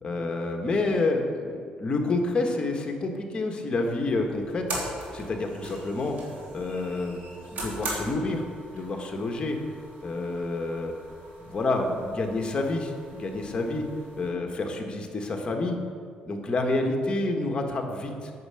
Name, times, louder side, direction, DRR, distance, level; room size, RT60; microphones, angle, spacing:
voice 1, 0.0-4.7 5.1-6.2 6.5-7.2 7.5-9.6 10.0-10.9 11.5-13.9 14.2-15.8 16.3-18.3, left 2 dB, 35° left, 3 dB, 1.7 m, -28 dB
sound 1, 3.7-14.3, right 2 dB, 65° right, 3.3 m, -40 dB
9.6 x 6.8 x 7.8 m, 2.2 s
cardioid pair, 100°, 3 cm